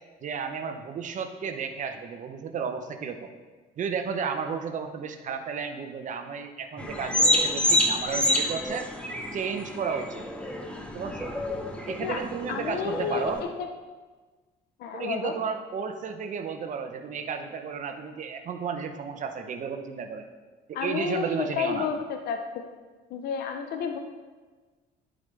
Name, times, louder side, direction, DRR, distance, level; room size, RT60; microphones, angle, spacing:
voice 1, 0.2-3.3 3.8-8.9 9.3-10.2 10.9-11.3 11.9-13.4 14.9-20.2 20.7-21.9, right 6 dB, 50° right, 7 dB, 0.8 m, -33 dB
sound 1, 6.8-13.4, equal, 5° left, 0.8 m, -28 dB
voice 2, 12.5-13.7 14.8-15.3 20.7-22.4 23.1-24.0, left 7 dB, 70° left, 5 dB, 0.6 m, -30 dB
11.0 x 5.0 x 3.4 m, 1.3 s
cardioid pair, 110°, 17 cm